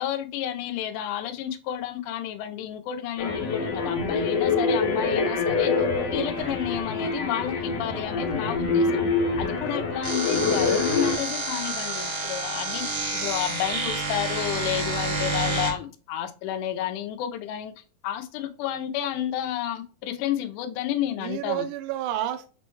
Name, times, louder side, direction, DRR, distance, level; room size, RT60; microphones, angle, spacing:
voice 1, 0.0-5.7 6.1-8.9 9.4-12.8 13.1-17.7 18.0-21.7, left 11 dB, 80° left, 1.9 m, -31 dB
sound 1, 3.2-11.2, left 4 dB, 65° left, 1.7 m, -25 dB
sound 2, 10.0-15.7, right 2 dB, 65° right, 1.0 m, -29 dB
voice 2, 21.2-22.5, right 12 dB, 80° right, 2.0 m, -31 dB
6.0 x 2.1 x 3.0 m
omnidirectional pair, 3.8 m